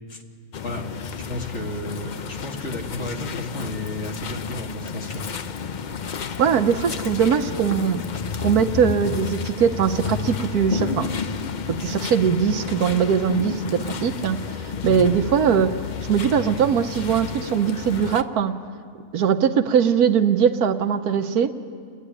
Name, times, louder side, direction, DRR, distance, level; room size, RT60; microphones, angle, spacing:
sound 1, 0.5-18.2, left 6 dB, 75° left, 0.4 m, -31 dB
voice 1, 1.1-5.2 14.8-15.2, left 2 dB, 45° left, 2 dB, 2.1 m, -32 dB
voice 2, 6.4-8.0 8.4-11.1 11.7-14.4 14.6-15.7 16.1-18.5 19.1-21.5, right 7 dB, 70° right, 8 dB, 1.3 m, -21 dB
29.0 x 11.0 x 10.0 m, 2.1 s
omnidirectional pair, 1.7 m